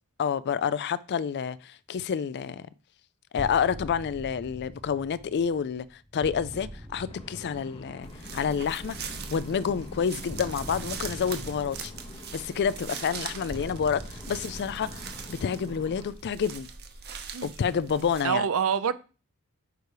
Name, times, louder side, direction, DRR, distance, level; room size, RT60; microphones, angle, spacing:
voice 1, 0.2-2.7 3.3-5.9 6.1-8.1 8.3-11.9 12.3-16.7 17.4-18.5, left 7 dB, 50° left, 0.4 m, -29 dB
sound 1, 3.4-9.1 10.3-16.6, equal, 10° right, 0.8 m, -45 dB
sound 2, 7.1-16.1, left 2 dB, 25° left, 0.7 m, -46 dB
sound 3, 8.0-18.2, right 5 dB, 45° right, 0.9 m, -41 dB
voice 2, 18.2-18.9, right 7 dB, 65° right, 0.6 m, -26 dB
6.7 x 4.7 x 4.9 m
head